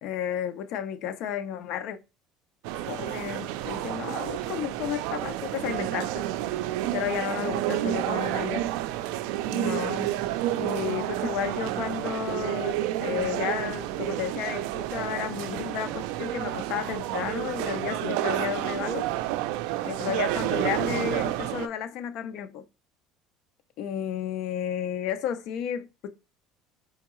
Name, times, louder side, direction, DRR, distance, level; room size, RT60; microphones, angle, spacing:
voice 1, 0.0-2.0 2.7-6.3 6.9-8.7 9.5-10.2 10.6-19.1 19.8-22.6 23.8-26.1, left 9 dB, 55° left, 0.5 m, -32 dB
sound 1, 2.6-21.7, right 14 dB, 85° right, 0.3 m, -30 dB
4.4 x 3.5 x 3.0 m
cardioid pair, 160°, 0 cm